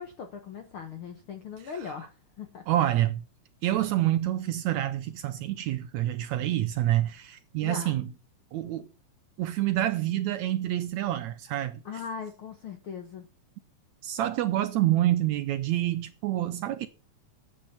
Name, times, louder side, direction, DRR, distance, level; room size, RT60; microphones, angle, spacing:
voice 1, 0.0-2.6 7.6-8.0 11.8-13.3, left 6 dB, 65° left, 1.3 m, -39 dB
voice 2, 2.7-3.2 3.6-8.1 8.5-8.9 9.4-11.8 14.0-16.9, right 13 dB, 75° right, 1.7 m, -27 dB
10.5 x 8.9 x 5.6 m
omnidirectional pair, 3.8 m